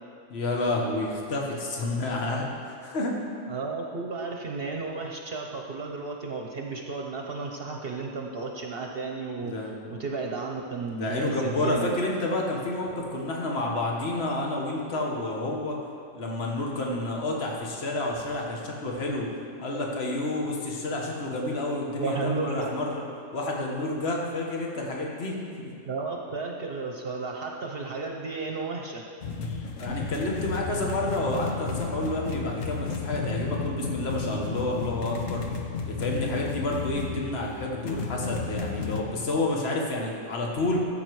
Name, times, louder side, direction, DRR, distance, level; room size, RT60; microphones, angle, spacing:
voice 1, 0.3-3.1 9.4-9.7 11.0-15.8 16.1-19.3 19.6-23.1 23.3-25.7 29.8-35.4 35.8-40.8, left 2 dB, 55° left, -1 dB, 1.6 m, -29 dB
voice 2, 3.5-9.6 9.9-11.9 22.0-22.7 25.8-29.0, right 4 dB, 55° right, 1 dB, 1.0 m, -33 dB
sound 1, 29.2-39.0, left 4 dB, 90° left, 1.3 m, -33 dB
14.5 x 7.7 x 4.7 m, 2.4 s
omnidirectional pair, 1.3 m